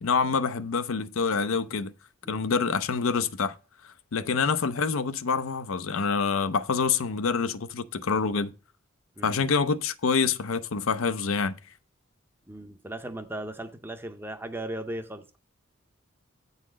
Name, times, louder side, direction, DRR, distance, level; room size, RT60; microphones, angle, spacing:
voice 1, 0.0-1.9 2.3-3.5 4.1-8.5 9.2-11.6, left 5 dB, 75° left, 0.6 m, -26 dB
voice 2, 12.5-15.4, right 1 dB, 10° right, 0.5 m, -37 dB
8.3 x 4.0 x 6.2 m
head